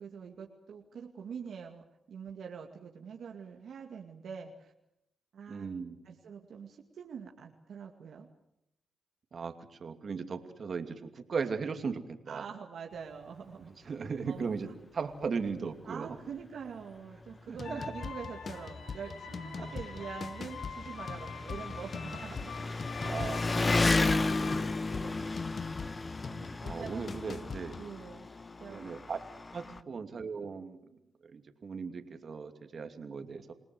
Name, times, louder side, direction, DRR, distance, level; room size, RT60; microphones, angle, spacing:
voice 1, 0.0-4.7 5.3-5.7 6.0-8.3 12.3-13.8 14.3-14.8 15.9-22.7 24.3-25.3 26.3-28.3 28.6-28.8 29.7-30.0, right 6 dB, 75° right, 2 dB, 2.3 m, -45 dB
voice 2, 5.5-6.0 9.3-12.4 13.9-14.7 14.9-16.1 17.5-17.9 19.6-19.7 23.0-24.0 26.7-27.7 28.7-29.2 29.5-30.8 31.3-33.5, right 5 dB, 55° right, 7 dB, 2.7 m, -37 dB
Engine, 15.2-15.3 15.7-15.8 16.8-16.9 17.1-29.8, left 3 dB, 30° left, 1.2 m, -34 dB
sound 1, 17.6-25.6, left 6 dB, 80° left, 3.6 m, -45 dB
sound 2, 17.6-27.9, left 5 dB, 50° left, 0.9 m, -43 dB
28.0 x 19.0 x 7.9 m, 0.80 s
cardioid pair, 65°, 0 cm